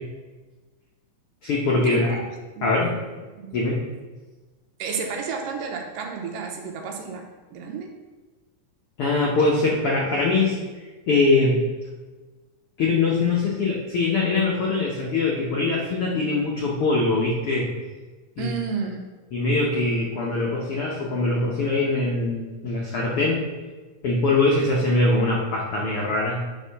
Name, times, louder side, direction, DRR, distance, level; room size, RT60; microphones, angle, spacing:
voice 1, 1.4-2.2 2.6-2.9 3.5-3.8 9.0-11.6 12.8-17.7 18.4-18.5 19.3-23.4 24.0-26.4, left 3 dB, 80° left, -3 dB, 1.2 m, -22 dB
voice 2, 2.6-2.9 3.4-3.6 4.8-7.9 18.4-19.2, right 5 dB, 80° right, 2 dB, 2.5 m, -32 dB
9.7 x 3.6 x 5.6 m, 1.3 s
omnidirectional pair, 4.0 m